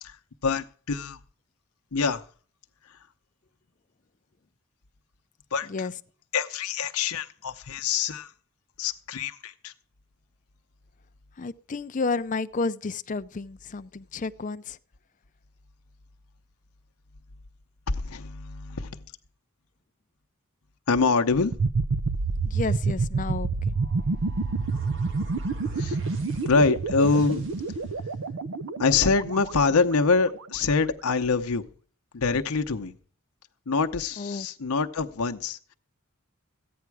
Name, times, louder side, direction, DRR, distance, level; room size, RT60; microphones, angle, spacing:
voice 1, 0.0-1.2 1.9-2.2 5.5-5.9 6.3-8.3 8.8-9.7 17.9-19.0 20.9-21.5 25.8-26.0 26.5-27.5 28.8-31.6 32.1-32.9 33.7-35.7, left 4 dB, 85° left, 0.8 m, -25 dB
voice 2, 11.4-14.8 22.5-23.5 34.2-34.5, left 3 dB, 35° left, 0.5 m, -31 dB
sound 1, 21.5-30.4, right 4 dB, 75° right, 0.6 m, -28 dB
sound 2, 23.7-28.3, right 2 dB, 60° right, 1.7 m, -49 dB
14.5 x 9.4 x 4.7 m
head